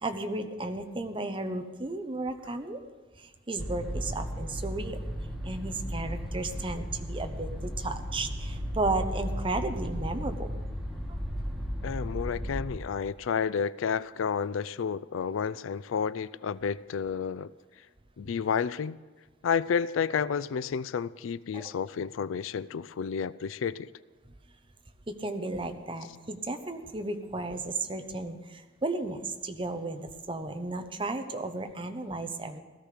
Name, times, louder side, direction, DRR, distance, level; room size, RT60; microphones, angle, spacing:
voice 1, 0.0-2.8 3.2-5.0 5.4-10.5 11.1-11.2 21.5-21.7 25.1-32.6, right 2 dB, 25° right, 0.9 m, -34 dB
sound 1, 3.6-12.6, equal, ahead, 1.8 m, -35 dB
voice 2, 11.8-17.5 18.2-19.0 19.4-23.9, left 6 dB, 75° left, 0.4 m, -31 dB
17.0 x 13.5 x 5.0 m
head